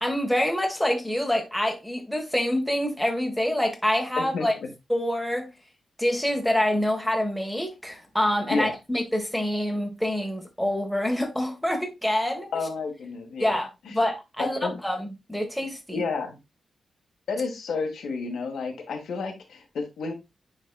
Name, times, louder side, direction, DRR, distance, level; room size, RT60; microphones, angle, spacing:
voice 1, 0.0-4.5 4.9-5.5 6.0-12.5 13.4-16.0, left 1 dB, ahead, 1.6 m, -26 dB
voice 2, 4.2-4.7 8.5-8.7 12.5-13.6 13.8-14.0 14.4-14.7 15.9-16.4 17.3-20.1, left 4 dB, 90° left, 1.8 m, -30 dB
9.8 x 4.1 x 2.4 m
wide cardioid pair, 110°, 0 cm